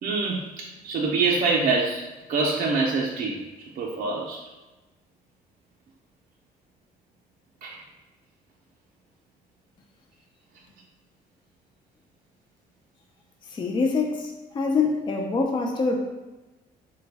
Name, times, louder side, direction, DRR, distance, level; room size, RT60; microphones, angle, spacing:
voice 1, 0.0-2.0 2.3-3.4 3.8-4.4 7.6-7.8, right 4 dB, 55° right, -2 dB, 0.5 m, -25 dB
voice 2, 13.5-16.0, left 4 dB, 30° left, 2 dB, 0.4 m, -25 dB
3.2 x 2.2 x 3.2 m, 1.1 s
cardioid pair, 90°, 17 cm